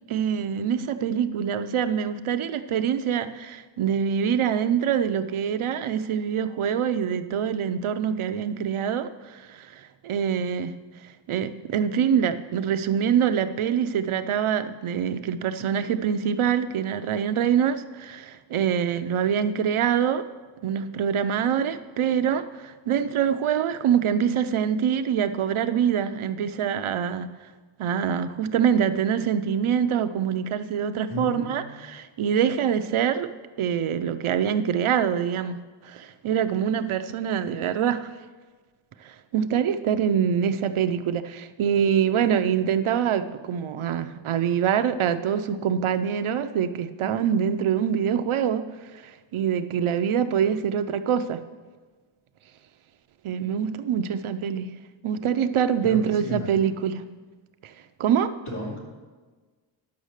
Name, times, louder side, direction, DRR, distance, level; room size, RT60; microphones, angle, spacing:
voice 1, 0.1-10.7 11.3-20.3 20.6-27.3 27.8-33.3 33.6-38.1 39.0-48.6 48.9-51.4 53.2-54.7 55.0-57.0 57.6-57.7 58.0-58.3, right 8 dB, 85° right, 10 dB, 0.7 m, -25 dB
voice 2, 31.1-31.7 55.8-56.5 58.5-58.8, equal, 90° left, -4 dB, 3.3 m, -34 dB
10.5 x 6.3 x 6.6 m, 1.4 s
wide cardioid pair, 175°, 48 cm